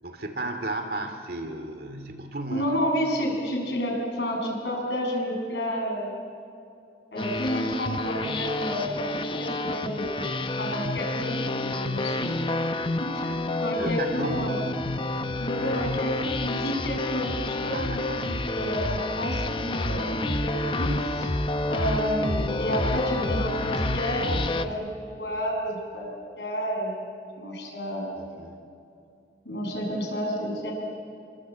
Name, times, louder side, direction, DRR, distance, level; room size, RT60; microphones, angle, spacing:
voice 1, 0.0-2.8 13.8-14.5 17.7-18.3 28.1-28.6, right 2 dB, 55° right, 6 dB, 2.6 m, -34 dB
voice 2, 2.5-6.2 7.1-10.3 10.6-12.7 13.0-13.1 13.6-14.6 15.4-21.3 21.7-24.9 25.2-26.1 26.4-27.0 27.4-28.2 29.5-30.7, equal, 70° left, 0 dB, 7.4 m, -30 dB
sound 1, 7.2-24.7, left 2 dB, 25° left, 0.9 m, -29 dB
27.0 x 24.0 x 8.8 m, 2.6 s
head